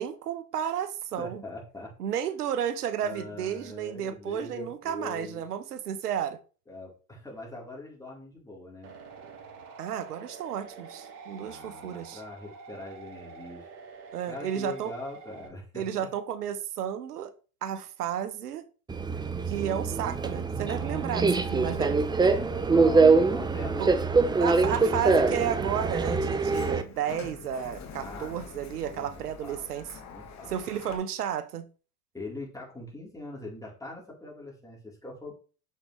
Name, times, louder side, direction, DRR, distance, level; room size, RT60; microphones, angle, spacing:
voice 1, 0.0-1.4 2.0-6.4 9.8-12.2 14.1-14.9 15.7-17.3 17.6-18.6 19.5-22.0 23.8-23.9 24.4-29.9 30.5-31.7, right 9 dB, 90° right, 0.8 m, -32 dB
voice 2, 1.2-1.9 3.0-5.4 6.7-8.9 11.4-13.7 14.2-16.1 21.4-21.7 22.4-23.8 24.3-25.0 25.4-25.5 27.9-28.4 28.8-29.8 30.0-30.9 32.1-35.3, left 2 dB, 10° left, 4.1 m, -42 dB
sound 1, 8.8-15.5, right 5 dB, 55° right, 2.2 m, -47 dB
Subway metro underground, 18.9-26.8, right 4 dB, 10° right, 0.6 m, -24 dB
Sliding door, 21.6-31.0, left 5 dB, 35° left, 1.7 m, -48 dB
6.6 x 6.5 x 3.4 m
hypercardioid pair, 90°, 45 cm